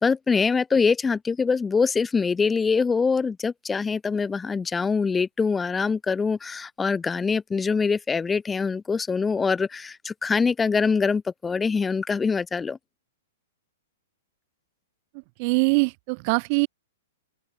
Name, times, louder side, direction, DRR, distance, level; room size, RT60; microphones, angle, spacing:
voice 1, 0.0-12.8, left 5 dB, 10° left, 3.6 m, -24 dB
voice 2, 15.4-16.7, right 33 dB, 40° right, 1.3 m, -22 dB
open air
hypercardioid pair, 145°, 0 cm